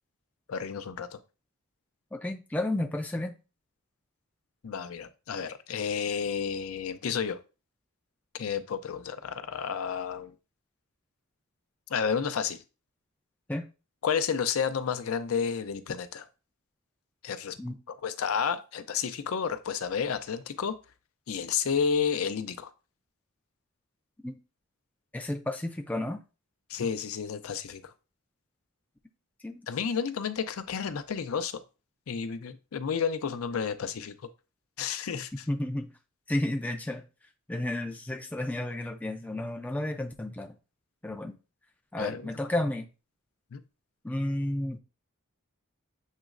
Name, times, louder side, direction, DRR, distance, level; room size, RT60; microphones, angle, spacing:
voice 1, 0.5-1.2 4.6-7.4 8.3-10.3 11.9-12.6 14.0-16.3 17.2-17.6 18.0-20.7 21.3-22.7 26.7-27.9 29.7-31.6 32.1-34.2 34.8-35.4 42.0-42.3 43.5-43.6, left 6 dB, 70° left, 0.5 m, -31 dB
voice 2, 2.1-3.3 13.5-13.7 17.6-17.8 24.2-24.3 25.1-26.2 29.4-29.6 35.5-35.9 36.3-37.1 37.5-40.5 41.0-41.4 41.9-42.9 44.0-44.8, left 1 dB, 5° left, 0.4 m, -32 dB
7.3 x 3.0 x 2.4 m
head